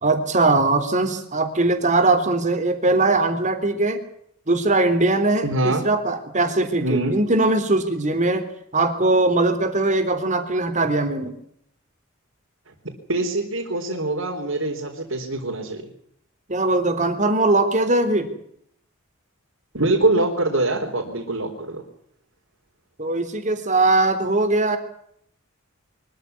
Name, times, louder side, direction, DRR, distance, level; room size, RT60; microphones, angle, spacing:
voice 1, 0.0-4.0 4.5-8.5 8.7-11.3 16.5-18.3 23.0-24.8, right 2 dB, 35° right, 9 dB, 3.7 m, -20 dB
voice 2, 5.4-5.8 6.8-7.1 13.1-15.8 19.7-21.8, right 2 dB, 75° right, 0 dB, 4.5 m, -23 dB
24.5 x 14.5 x 9.7 m, 0.69 s
head